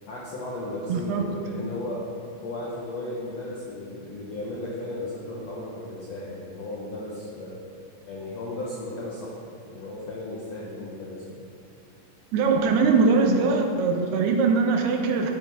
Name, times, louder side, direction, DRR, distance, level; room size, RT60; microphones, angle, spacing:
voice 1, 0.1-2.1 2.4-7.6 8.1-9.4 9.6-11.4 12.6-13.0, left 2 dB, 85° left, -5 dB, 1.4 m, -35 dB
voice 2, 0.9-1.6 12.3-15.3, right 4 dB, 80° right, 3 dB, 2.8 m, -22 dB
12.5 x 8.9 x 3.6 m, 2.3 s
omnidirectional pair, 4.8 m